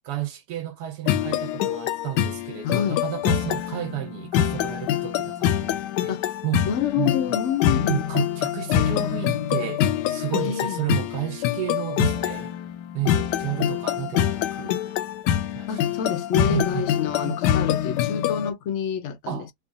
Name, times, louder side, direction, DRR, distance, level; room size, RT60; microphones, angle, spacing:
voice 1, 0.1-6.2 6.4-6.7 7.0-7.1 7.9-12.6 12.9-14.9 15.5-15.7 16.5-16.9 17.2-17.4 19.3-19.5, right 13 dB, 80° right, 1.2 m, -32 dB
sound 1, 1.1-18.5, left 10 dB, 85° left, 1.2 m, -25 dB
voice 2, 2.6-3.0 6.1-6.3 6.7-8.0 10.4-10.9 15.7-19.5, left 8 dB, 65° left, 0.7 m, -27 dB
3.3 x 2.1 x 3.8 m
omnidirectional pair, 1.8 m